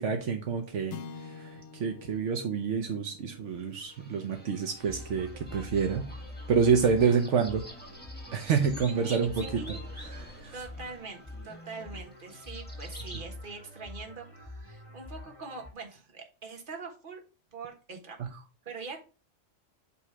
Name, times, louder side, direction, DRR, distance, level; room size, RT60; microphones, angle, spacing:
voice 1, 0.0-6.1 6.5-7.6 8.3-9.6 10.1-10.5, right 6 dB, 75° right, 4 dB, 1.2 m, -28 dB
sound 1, 0.9-5.4, left 6 dB, 65° left, 0.9 m, -48 dB
sound 2, 3.6-13.2, equal, 10° left, 1.6 m, -49 dB
sound 3, 4.9-15.7, left 1 dB, 25° left, 2.3 m, -45 dB
voice 2, 8.8-9.8 10.5-17.2 17.5-19.0, right 4 dB, 45° right, 2 dB, 1.5 m, -43 dB
8.4 x 3.2 x 4.7 m, 0.35 s
omnidirectional pair, 1.3 m